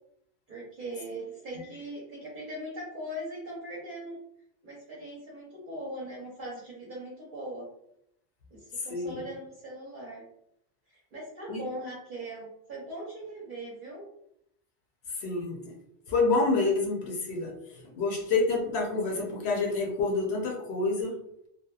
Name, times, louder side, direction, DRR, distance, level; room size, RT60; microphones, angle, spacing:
voice 1, 0.5-4.2 4.6-7.7 8.5-10.3 10.9-14.1, right 1 dB, 55° right, -6 dB, 0.8 m, -40 dB
voice 2, 8.8-9.2 11.5-11.6 15.1-15.7 16.1-21.2, left 3 dB, 75° left, 0 dB, 0.9 m, -28 dB
2.8 x 2.2 x 2.3 m, 0.76 s
omnidirectional pair, 1.1 m